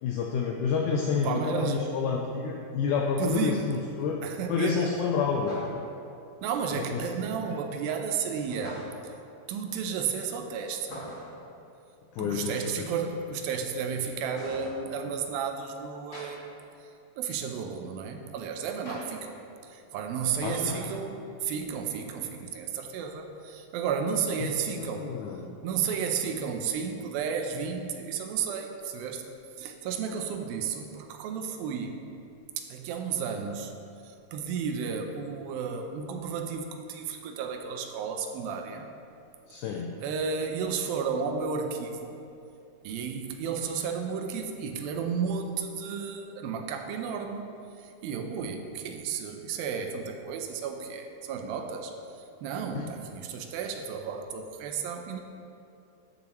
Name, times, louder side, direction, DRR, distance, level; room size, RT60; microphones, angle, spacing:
voice 1, 0.0-4.2 4.5-5.5 6.8-7.0 12.1-12.9 20.4-20.8 24.4-25.5 39.5-40.0 52.7-52.9, left 5 dB, 90° left, 1 dB, 1.7 m, -29 dB
voice 2, 1.2-2.0 3.2-3.9 4.2-4.9 6.4-8.9 9.5-11.0 12.2-25.1 25.6-29.2 29.6-32.0 32.6-33.7 34.0-38.9 39.5-39.6 40.0-42.1 42.8-51.9 52.4-55.2, right 6 dB, 85° right, 5 dB, 2.5 m, -33 dB
sound 1, 2.8-2.9 5.4-6.0 8.5-9.1 10.8-11.4 14.3-14.8 16.1-16.3 18.8-19.0 20.6-20.9, equal, 30° left, 1.4 m, -42 dB
12.0 x 6.1 x 3.1 m, 2.7 s
omnidirectional pair, 4.1 m